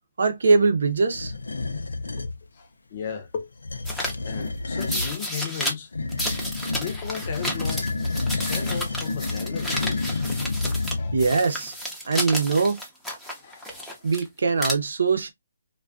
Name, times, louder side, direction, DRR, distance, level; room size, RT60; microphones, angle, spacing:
voice 1, 0.2-1.3 11.1-11.7 12.1-12.8 14.0-15.3, right 4 dB, 70° right, 0.6 m, -22 dB
sound 1, 1.1-2.4 3.5-5.1 5.9-11.4, left 3 dB, 85° left, 0.4 m, -29 dB
voice 2, 2.2-3.5 4.2-5.9 6.7-7.9 8.3-10.2 10.7-11.2 13.4-14.1, left 7 dB, 45° left, 0.6 m, -36 dB
sound 2, 3.8-4.1 4.8-5.7 6.1-10.9 11.2-14.2 14.5-14.7, equal, ahead, 0.6 m, -31 dB
2.4 x 2.2 x 2.4 m
hypercardioid pair, 150°, 0 cm